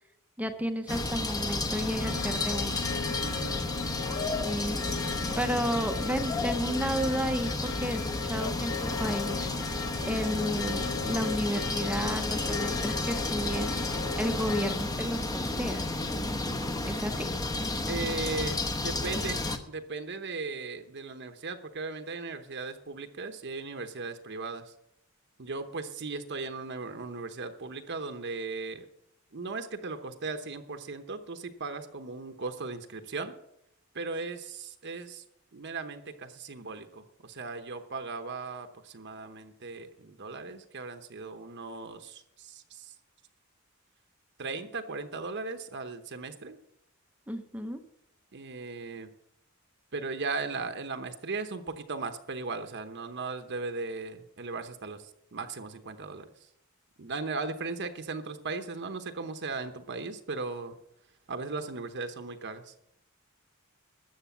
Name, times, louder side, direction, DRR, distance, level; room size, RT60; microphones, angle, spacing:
voice 1, 0.4-2.8 4.3-4.8 5.4-9.8 10.1-13.7 14.1-15.8 16.8-17.3 47.3-47.8, equal, 5° right, 7 dB, 0.8 m, -32 dB
sound 1, 0.9-19.6, left 2 dB, 15° left, 0.9 m, -32 dB
sound 2, 2.0-14.8, left 5 dB, 85° left, 0.7 m, -38 dB
voice 2, 3.2-3.6 4.1-4.5 17.9-18.6 18.8-24.7 25.4-28.9 29.3-33.3 33.9-35.2 35.5-42.9 44.4-46.6 48.3-49.1 49.9-56.3 57.0-60.8 61.3-62.7, right 3 dB, 55° right, 7 dB, 0.9 m, -37 dB
13.0 x 8.0 x 7.0 m, 0.78 s
head